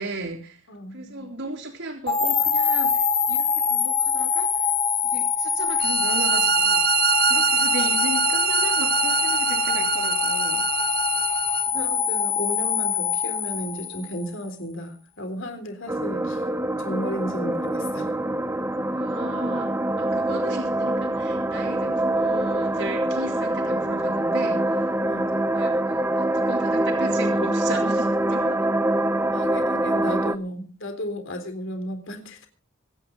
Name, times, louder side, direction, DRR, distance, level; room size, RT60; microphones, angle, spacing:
voice 1, 0.0-4.7 5.0-6.8 7.2-10.7 18.9-24.9 25.5-28.7, right 2 dB, 65° right, 3.3 m, -36 dB
voice 2, 0.7-1.4 11.7-16.5 16.8-18.5 25.0-25.4 29.3-32.5, equal, 65° left, 3.7 m, -34 dB
sound 1, 2.1-14.3, left 5 dB, 30° left, 1.6 m, -24 dB
sound 2, 5.8-11.6, right 8 dB, 45° right, 0.9 m, -24 dB
sound 3, 15.9-30.4, right 1 dB, 10° right, 0.8 m, -24 dB
25.0 x 10.0 x 3.9 m
head